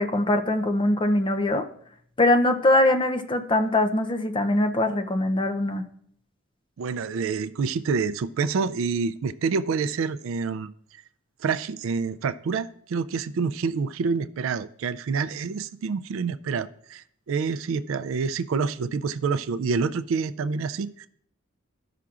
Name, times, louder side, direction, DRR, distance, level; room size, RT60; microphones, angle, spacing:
voice 1, 0.0-1.7 2.2-5.8, left 1 dB, 25° left, 7 dB, 0.5 m, -22 dB
voice 2, 6.8-10.7 11.4-21.1, right 5 dB, 70° right, 13 dB, 0.4 m, -27 dB
14.0 x 5.8 x 2.4 m, 0.65 s
head